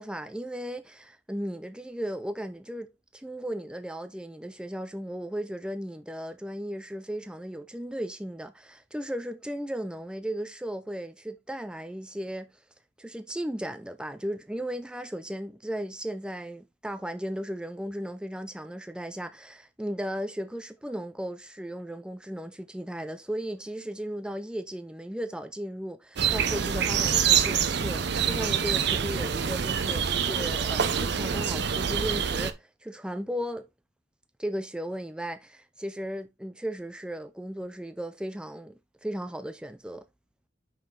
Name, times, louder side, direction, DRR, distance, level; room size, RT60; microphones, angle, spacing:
voice 1, 0.0-12.5 13.0-33.7 34.4-40.1, equal, 5° right, 0.4 m, -36 dB
sound 1, 26.2-32.5, right 7 dB, 60° right, 0.6 m, -26 dB
5.7 x 4.8 x 3.7 m
head